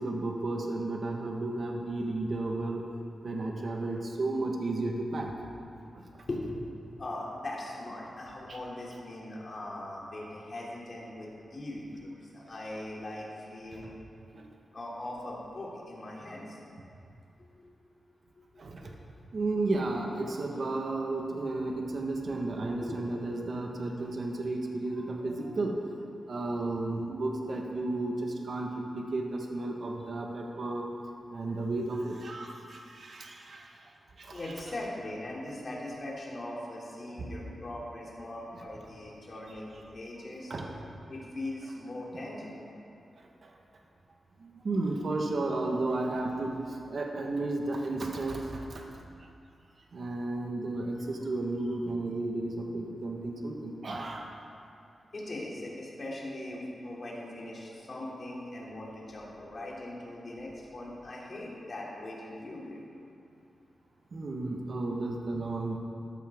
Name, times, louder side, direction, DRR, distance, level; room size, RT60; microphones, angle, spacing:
voice 1, 0.0-2.8 3.2-5.3 5.9-6.2 8.5-8.6 13.7-14.0 14.3-14.5 18.6-18.9 19.3-25.8 26.3-30.9 31.3-33.9 34.2-34.5 37.2-37.6 38.5-38.7 40.5-40.8 43.2-43.6 44.4-48.9 49.9-54.3 64.1-65.8, right 2 dB, 55° right, 1 dB, 1.4 m, -33 dB
voice 2, 6.3-6.6 7.0-13.9 14.7-16.6 18.8-18.9 22.7-23.0 34.3-40.5 41.1-42.6 55.1-62.8, left 1 dB, 40° left, -4 dB, 2.9 m, -40 dB
13.5 x 13.0 x 3.7 m, 2.5 s
wide cardioid pair, 130°, 0 cm